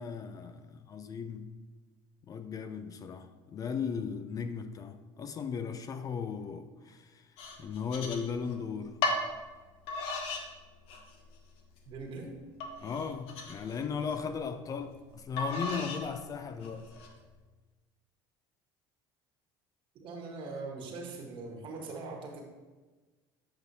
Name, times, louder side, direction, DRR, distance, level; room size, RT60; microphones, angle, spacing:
voice 1, 0.0-1.7 2.3-7.3 7.6-9.0 12.8-16.9, left 6 dB, 35° left, 0.4 m, -37 dB
sound 1, 7.4-8.6 9.0-9.3 9.9-10.5 10.9-11.4 11.9-12.0 12.6-14.2 15.4-16.1 16.6-17.1, left 3 dB, 70° left, 1.0 m, -35 dB
voice 2, 11.8-12.4 19.9-22.4, right 3 dB, 55° right, 1.3 m, -41 dB
7.9 x 5.3 x 2.7 m
supercardioid pair, 100°, 10 cm